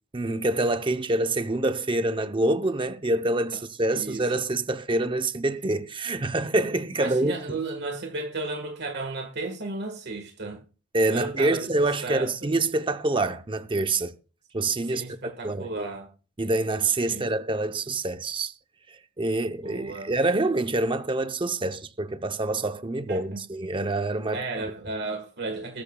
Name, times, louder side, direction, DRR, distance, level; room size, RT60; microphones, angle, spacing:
voice 1, 0.1-7.6 10.9-14.1 14.5-15.0 15.4-15.7 16.4-18.5 18.9-24.4, right 2 dB, 25° right, 0.7 m, -26 dB
voice 2, 3.9-4.3 7.0-10.6 11.0-11.7 12.0-12.3 14.9-16.1 17.1-17.3 19.6-20.1 23.1-23.4 24.3-25.8, right 3 dB, 55° right, 1.5 m, -34 dB
20.5 x 10.5 x 2.3 m
head